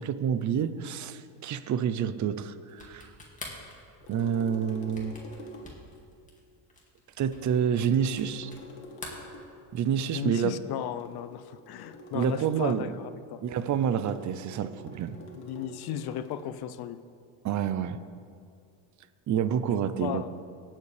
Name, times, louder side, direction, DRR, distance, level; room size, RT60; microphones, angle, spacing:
voice 1, 0.0-3.1 4.1-5.1 7.2-8.5 9.7-10.5 12.1-12.9 13.4-15.2 17.4-18.0 19.3-20.2, right 8 dB, 40° right, 13 dB, 0.6 m, -28 dB
sound 1, 2.7-8.7 8.9-10.0, left 2 dB, 15° left, 2.2 m, -46 dB
sound 2, 4.0-5.9 7.3-9.6 11.0-13.0 14.1-16.5, equal, 65° left, 1.7 m, -47 dB
voice 2, 10.1-13.4 15.4-17.0 20.0-20.3, left 10 dB, 50° left, 12 dB, 0.6 m, -35 dB
18.0 x 7.4 x 3.3 m, 2.3 s
supercardioid pair, 100°, 49 cm